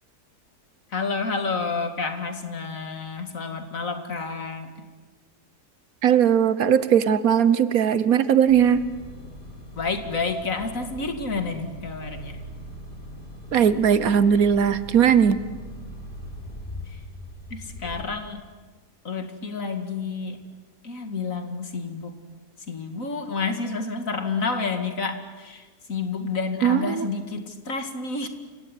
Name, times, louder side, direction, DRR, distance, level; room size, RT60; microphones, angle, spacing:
voice 1, 0.9-4.8 9.8-12.4 16.9-17.0 17.5-18.4 19.0-20.4 20.8-22.2 22.7-28.3, left 4 dB, 60° left, 7 dB, 2.5 m, -30 dB
voice 2, 6.0-8.8 13.5-15.4 26.6-27.1, right 8 dB, 65° right, 14 dB, 1.4 m, -19 dB
sound 1, 8.5-18.0, equal, 30° left, 3.7 m, -40 dB
28.0 x 17.5 x 9.9 m, 1.4 s
omnidirectional pair, 1.6 m